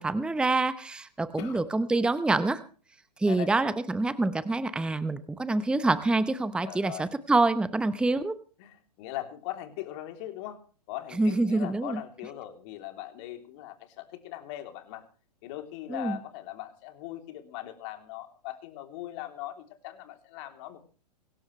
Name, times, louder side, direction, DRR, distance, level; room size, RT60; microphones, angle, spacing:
voice 1, 0.0-2.6 3.2-8.3 11.2-12.0 15.9-16.2, right 2 dB, 5° right, 14 dB, 0.9 m, -26 dB
voice 2, 6.6-7.1 8.6-10.6 10.9-15.0 15.4-20.8, left 14 dB, 45° left, 6 dB, 3.2 m, -40 dB
24.5 x 12.5 x 3.2 m, 0.39 s
figure-of-eight pair, 110°, 21 cm